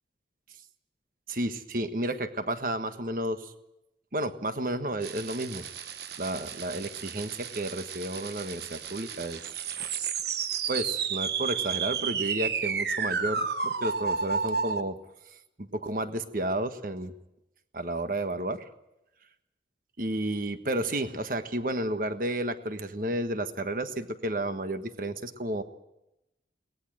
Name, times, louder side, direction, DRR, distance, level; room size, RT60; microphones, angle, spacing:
voice 1, 1.3-3.5 4.1-5.6 6.2-9.4 10.7-15.0 15.3-17.1 17.7-18.7 20.0-25.6, right 1 dB, 50° right, 9 dB, 1.5 m, -32 dB
sound 1, 5.0-14.8, right 6 dB, 65° right, 1.2 m, -32 dB
22.5 x 19.0 x 7.8 m, 0.88 s
head